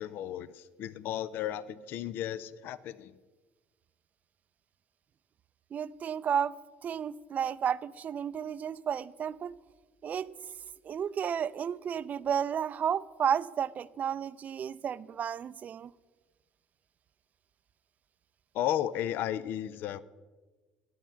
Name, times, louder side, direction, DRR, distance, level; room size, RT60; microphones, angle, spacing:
voice 1, 0.0-3.1 18.5-20.0, left 11 dB, 65° left, 18 dB, 0.5 m, -34 dB
voice 2, 5.7-9.5 10.0-10.3 10.8-15.9, right 8 dB, 45° right, 17 dB, 0.4 m, -32 dB
11.5 x 9.2 x 5.8 m, 1.3 s
hypercardioid pair, 70°, 4 cm